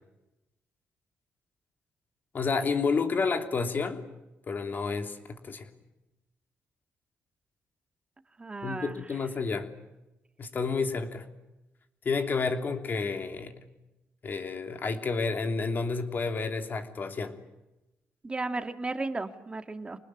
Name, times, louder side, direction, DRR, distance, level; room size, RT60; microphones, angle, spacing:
voice 1, 2.3-4.0 4.5-5.7 8.6-9.7 10.4-11.3 12.0-13.5 14.2-17.3, left 4 dB, 45° left, 6 dB, 3.1 m, -30 dB
voice 2, 8.4-9.1 18.2-20.0, right 3 dB, 25° right, 8 dB, 2.1 m, -34 dB
26.5 x 20.0 x 9.9 m, 0.99 s
cardioid pair, 95°, 4 cm